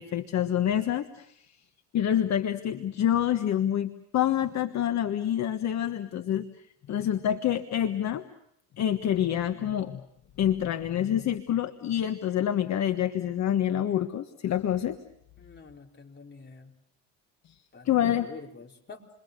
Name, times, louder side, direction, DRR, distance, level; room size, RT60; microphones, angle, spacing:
voice 1, 0.0-1.5 1.9-6.5 6.9-8.2 8.8-10.0 10.4-15.0 17.8-18.3, left 10 dB, 55° left, 8 dB, 1.4 m, -27 dB
voice 2, 15.4-16.7 17.7-19.0, left 4 dB, 30° left, 2 dB, 4.4 m, -47 dB
29.0 x 23.5 x 6.7 m, 0.76 s
cardioid pair, 95°, 33 cm